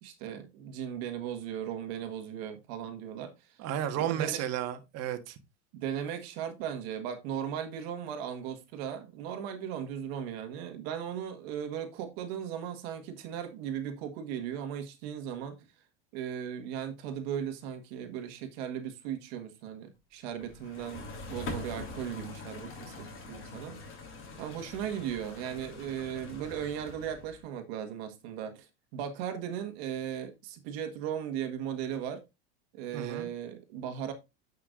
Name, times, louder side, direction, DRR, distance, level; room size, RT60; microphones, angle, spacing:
voice 1, 0.0-3.3 4.0-4.4 5.7-15.5 16.1-23.8 24.4-32.2 32.7-34.1, right 9 dB, 65° right, 1.7 m, -37 dB
voice 2, 3.6-5.4 32.9-33.3, right 10 dB, 50° right, 1.6 m, -33 dB
sound 1, 20.4-27.4, left 3 dB, 40° left, 3.2 m, -43 dB
9.9 x 5.7 x 2.5 m
supercardioid pair, 110°, 33 cm